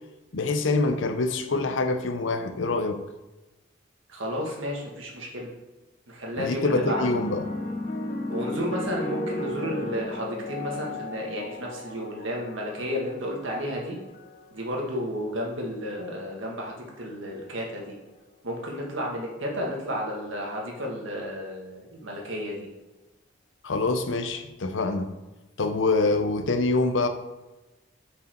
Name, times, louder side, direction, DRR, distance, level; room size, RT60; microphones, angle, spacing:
voice 1, 0.3-3.0 6.4-7.5 23.6-25.1 25.6-27.1, left 3 dB, 70° left, 8 dB, 0.7 m, -25 dB
voice 2, 4.1-5.5 6.1-7.0 8.3-14.0 14.5-17.9 18.4-22.7, equal, 75° right, -1 dB, 1.7 m, -32 dB
sound 1, 6.4-15.0 15.9-16.3, left 2 dB, 40° left, 0.8 m, -35 dB
5.5 x 5.0 x 4.5 m, 1.1 s
head